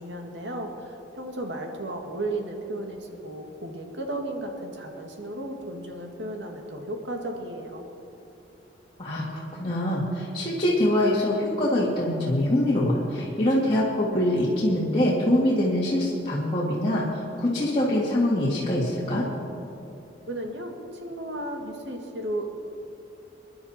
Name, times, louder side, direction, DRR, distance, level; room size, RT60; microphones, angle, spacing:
voice 1, 0.0-7.8 20.3-22.5, right 1 dB, 75° right, 2 dB, 2.0 m, -34 dB
voice 2, 9.0-19.3, left 1 dB, 25° left, -7 dB, 2.3 m, -24 dB
27.5 x 11.0 x 4.4 m, 2.9 s
head